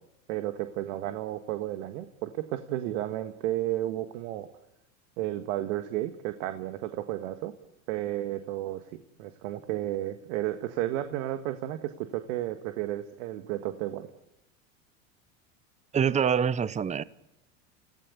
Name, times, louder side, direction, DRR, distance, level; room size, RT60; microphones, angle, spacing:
voice 1, 0.3-4.5 5.2-7.5 7.9-8.8 9.2-14.1, right 14 dB, 70° right, 8 dB, 1.8 m, -32 dB
voice 2, 15.9-17.0, right 7 dB, 15° right, 18 dB, 0.8 m, -25 dB
29.0 x 16.5 x 8.5 m, 0.87 s
supercardioid pair, 105°, 40 cm